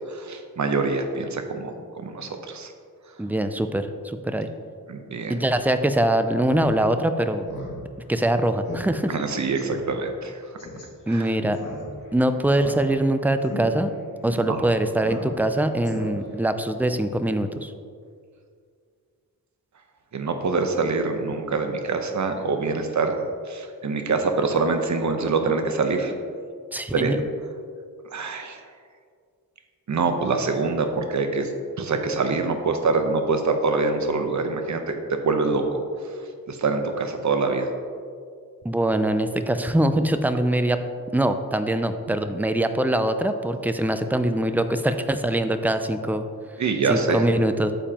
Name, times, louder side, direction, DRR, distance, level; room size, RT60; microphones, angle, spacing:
voice 1, 0.1-2.7 4.9-5.4 9.1-10.4 11.1-11.3 14.5-14.6 20.1-23.2 23.5-26.1 26.9-27.1 28.1-28.6 29.9-31.5 31.8-35.0 35.2-35.8 36.5-37.7 46.6-47.3, right 4 dB, 50° right, 5 dB, 0.8 m, -25 dB
voice 2, 3.2-4.5 5.3-7.4 8.1-9.2 11.1-11.6 12.1-13.9 14.2-17.7 26.7-27.2 38.6-40.8 41.1-46.3 46.9-47.7, right 1 dB, 5° right, 9 dB, 0.3 m, -23 dB
Speech synthesizer, 6.4-6.7 7.0-7.1 7.4-7.7 8.1-8.2 8.7-8.8 9.1-9.2 9.6-9.8 10.6-10.8 11.5-12.1 12.5-13.1 13.4-13.6 14.2-14.4 15.0-15.5 15.8-16.4, left 2 dB, 55° left, 2.1 m, -36 dB
8.8 x 7.1 x 2.9 m, 2.1 s
wide cardioid pair, 110°, 37 cm